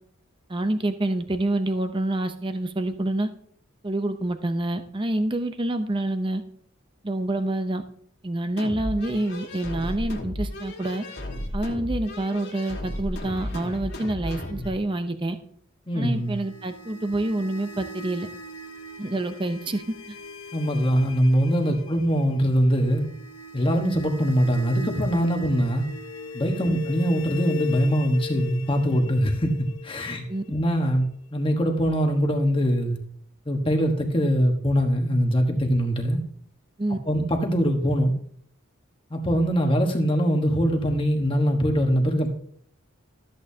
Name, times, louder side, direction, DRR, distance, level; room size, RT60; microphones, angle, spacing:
voice 1, 0.5-3.3 3.8-6.4 7.0-7.8 8.2-11.1 11.5-15.4 15.9-18.3 19.0-19.8 20.1-20.2 21.6-21.7 26.6-26.8 30.3-30.4 36.8-37.0, right 1 dB, 25° right, 9 dB, 0.6 m, -27 dB
sound 1, 8.6-14.8, left 1 dB, 55° left, 1.9 m, -34 dB
voice 2, 15.9-16.4 20.5-23.1 23.5-25.9 26.3-31.0 31.3-33.0 33.5-36.2 37.0-38.1 39.1-42.3, equal, 25° left, 2 dB, 1.3 m, -22 dB
sound 2, 16.1-31.1, left 3 dB, 75° left, 1.0 m, -40 dB
13.0 x 8.6 x 2.8 m, 0.63 s
head